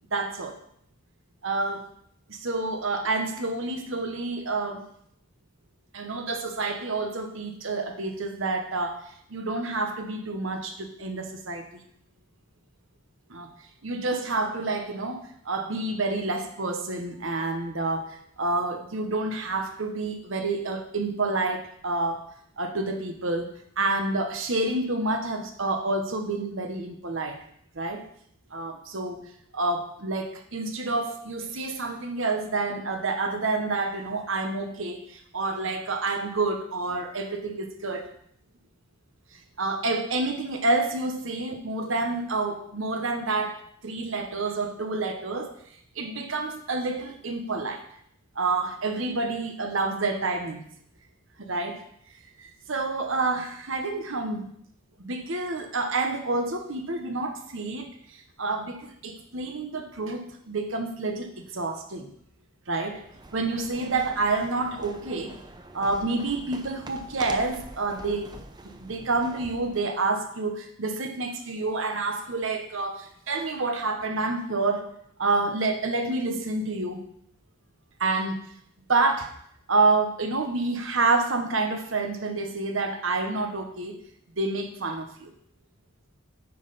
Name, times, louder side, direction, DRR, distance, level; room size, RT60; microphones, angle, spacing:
voice 1, 0.1-0.6 1.4-1.9 2.3-4.9 5.9-11.8 13.3-13.5 13.8-22.3 22.6-27.4 27.7-28.0 28.5-29.3 29.5-38.1 39.6-45.5 45.9-47.8 48.3-50.6 51.4-51.8 52.4-54.5 55.0-62.1 62.7-63.0 63.3-65.3 65.7-68.4 68.8-74.9 75.2-77.1 78.0-78.4 78.9-79.3 79.7-84.0 84.4-85.3, right 3 dB, 70° right, 6 dB, 1.1 m, -28 dB
sound 1, 62.8-69.9, right 2 dB, 20° right, 0.6 m, -45 dB
9.2 x 5.6 x 4.1 m, 0.68 s
head